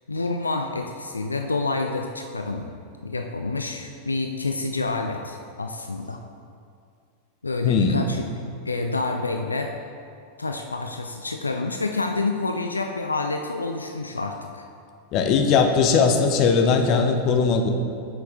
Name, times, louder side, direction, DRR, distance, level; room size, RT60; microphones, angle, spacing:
voice 1, 0.1-2.7 3.0-6.2 7.4-8.3 8.7-9.7 10.4-14.7, left 3 dB, 80° left, 4 dB, 0.3 m, -28 dB
voice 2, 7.6-8.0 15.1-17.7, left 5 dB, 40° left, 5 dB, 0.6 m, -19 dB
7.2 x 5.8 x 3.7 m, 2.4 s
figure-of-eight pair, 90°, 0 cm